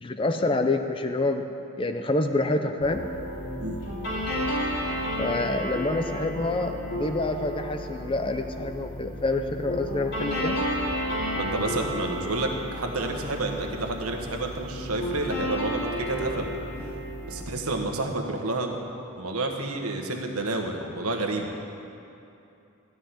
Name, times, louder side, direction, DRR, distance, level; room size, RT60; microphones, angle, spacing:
voice 1, 0.0-1.4 1.8-3.0 5.2-10.6, left 2 dB, 25° left, 7 dB, 0.5 m, -27 dB
sound 1, 2.8-17.4, equal, 50° left, 3.1 m, -32 dB
voice 2, 11.4-16.5 16.8-16.9 17.3-18.8 19.2-21.5, right 2 dB, 85° right, 2 dB, 1.4 m, -30 dB
13.5 x 6.5 x 9.7 m, 2.8 s
head